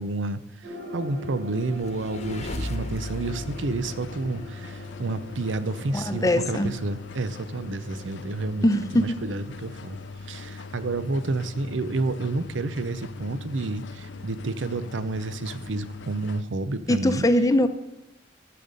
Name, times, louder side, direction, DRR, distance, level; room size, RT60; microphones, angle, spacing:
voice 1, 0.0-8.7 8.9-10.0 10.2-17.3, right 3 dB, 90° right, 13 dB, 0.6 m, -30 dB
sound 1, 0.6-12.9 13.2-13.3, left 2 dB, 65° right, 2.1 m, -44 dB
sound 2, 1.4-5.0, left 1 dB, 35° left, 1.0 m, -37 dB
sound 3, 2.1-16.4, left 3 dB, 70° left, 0.5 m, -40 dB
voice 2, 5.9-6.7 8.6-9.2 16.9-17.7, left 1 dB, 20° left, 9 dB, 0.7 m, -21 dB
12.5 x 6.7 x 5.3 m, 0.89 s
head